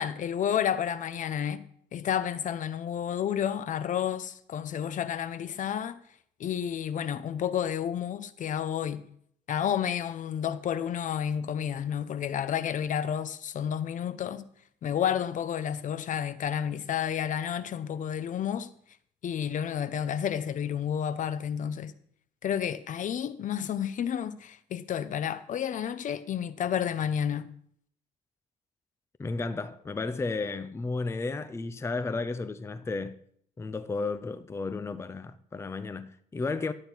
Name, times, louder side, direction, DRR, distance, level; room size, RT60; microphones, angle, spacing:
voice 1, 0.0-1.6 1.9-6.0 6.4-9.0 9.5-14.4 14.8-18.7 19.2-21.9 22.4-27.5, left 9 dB, 50° left, 0.7 m, -30 dB
voice 2, 29.2-33.2 33.6-36.7, left 3 dB, 15° left, 0.6 m, -33 dB
12.5 x 8.7 x 4.5 m
cardioid pair, 110°, 17 cm